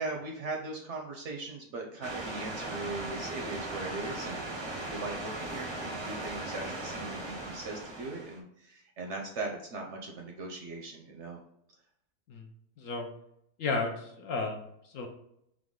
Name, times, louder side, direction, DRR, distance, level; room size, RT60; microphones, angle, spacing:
voice 1, 0.0-4.4 4.9-11.4, right 3 dB, 60° right, 1 dB, 0.8 m, -39 dB
sound 1, 2.0-8.4, right 2 dB, 30° right, 0.5 m, -38 dB
voice 2, 12.8-13.1 13.6-15.1, left 3 dB, 65° left, 3 dB, 0.9 m, -33 dB
3.8 x 3.3 x 3.6 m, 0.75 s
omnidirectional pair, 1.7 m